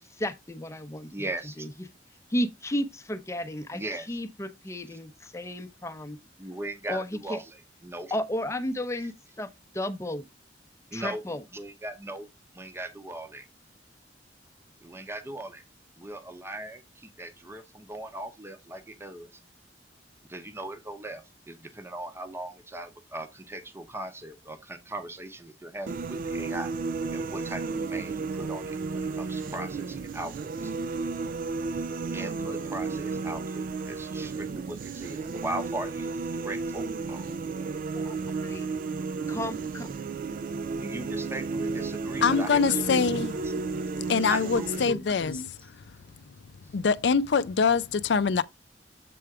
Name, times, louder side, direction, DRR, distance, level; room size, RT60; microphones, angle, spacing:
voice 1, 0.0-1.3 1.6-1.7 2.3-6.2 6.9-7.4 8.1-9.5 9.7-10.3 10.9-11.4 37.9-38.7 39.3-39.9, left 1 dB, 15° left, 0.7 m, -33 dB
voice 2, 1.1-1.7 3.7-4.1 4.9-5.0 6.4-8.1 10.9-11.2 11.5-12.3 12.5-13.5 14.8-15.6 16.0-19.4 20.3-26.7 27.1-30.7 32.1-37.2 40.8-43.5 44.3-45.4, right 1 dB, 15° right, 0.8 m, -39 dB
sound 1, 25.9-44.9, right 4 dB, 50° right, 0.3 m, -33 dB
voice 3, 42.2-43.8 44.1-45.8 46.7-48.4, left 5 dB, 70° left, 0.5 m, -25 dB
7.7 x 3.5 x 4.7 m
head